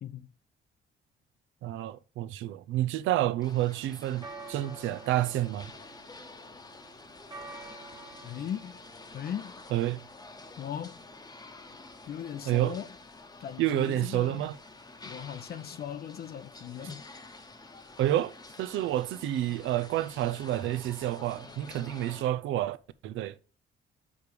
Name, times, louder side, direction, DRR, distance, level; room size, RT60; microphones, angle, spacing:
voice 1, 1.6-5.7 9.7-10.0 12.5-12.8 13.6-14.6 18.0-18.3 18.6-22.8 23.0-23.3, right 13 dB, 85° right, 0.5 m, -29 dB
sound 1, 3.4-22.2, left 3 dB, 20° left, 0.9 m, -49 dB
sound 2, 4.2-22.9, right 3 dB, 20° right, 1.2 m, -53 dB
voice 2, 8.2-8.8 9.1-9.5 10.6-11.0 12.1-12.9 13.4-14.4 15.0-17.1 19.5-19.6 21.5-21.9, left 9 dB, 50° left, 0.5 m, -39 dB
5.2 x 5.0 x 4.6 m
cardioid pair, 90°, 20 cm